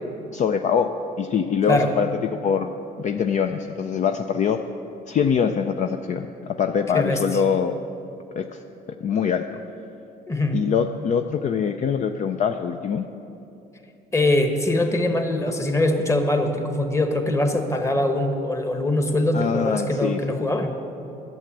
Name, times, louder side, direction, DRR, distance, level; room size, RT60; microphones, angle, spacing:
voice 1, 0.3-0.9 1.2-2.1 2.4-2.7 3.0-4.6 5.1-7.8 8.4-8.6 9.0-9.5 10.5-13.0 19.3-20.4, left 7 dB, 45° left, 7 dB, 0.5 m, -23 dB
voice 2, 6.9-7.4 10.3-10.6 14.1-20.7, left 1 dB, 15° left, 6 dB, 1.2 m, -22 dB
11.0 x 7.6 x 8.6 m, 2.9 s
cardioid pair, 110°, 17 cm